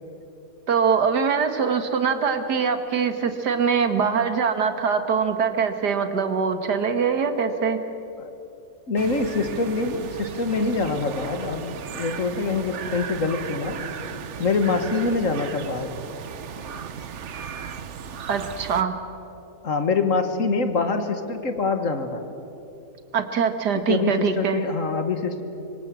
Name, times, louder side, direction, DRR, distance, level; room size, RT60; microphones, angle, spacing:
voice 1, 0.7-7.8 18.3-19.0 23.1-24.6, right 6 dB, 90° right, 8 dB, 2.2 m, -23 dB
voice 2, 8.9-13.8 14.4-16.0 19.6-22.2 23.7-25.4, left 4 dB, 55° left, 7 dB, 2.0 m, -25 dB
sound 1, 9.0-18.8, right 7 dB, 50° right, 1.1 m, -36 dB
26.0 x 24.0 x 7.6 m, 2.9 s
omnidirectional pair, 1.7 m